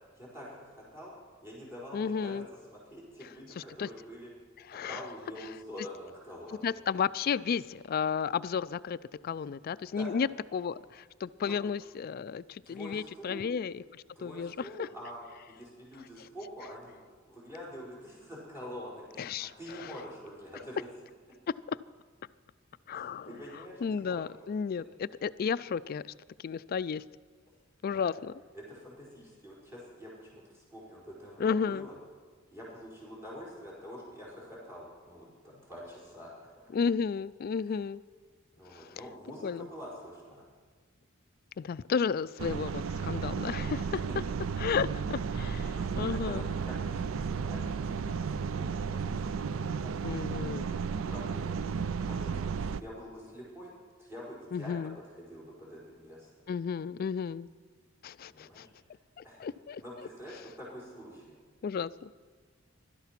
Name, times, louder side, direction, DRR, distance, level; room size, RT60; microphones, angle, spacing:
voice 1, 0.2-1.1 1.4-2.4 2.7-4.3 4.8-6.7 9.9-10.1 11.4-11.5 12.6-13.4 14.1-20.9 22.9-24.2 27.8-28.1 28.5-32.0 32.5-36.3 37.6-37.8 38.5-40.4 44.1-44.2 45.3-50.2 50.8-53.7 54.0-56.3 58.3-59.0 59.2-59.5 59.8-61.4, equal, 15° right, -6 dB, 4.6 m, -46 dB
voice 2, 1.9-2.5 3.6-3.9 4.7-5.0 6.6-9.0 9.2-14.9 19.2-19.5 19.8-19.9 21.7-21.8 22.9-23.3 23.8-26.1 26.4-27.0 27.8-28.3 31.4-31.9 36.7-38.0 39.4-39.7 41.6-44.1 44.6-46.5 50.0-50.7 54.5-55.0 56.5-57.5 58.0-58.7 59.2-59.8 61.6-62.2, left 6 dB, 45° left, 17 dB, 0.3 m, -33 dB
sound 1, 42.4-52.8, right 6 dB, 80° right, 0.4 m, -33 dB
16.5 x 12.5 x 5.9 m, 1.5 s
head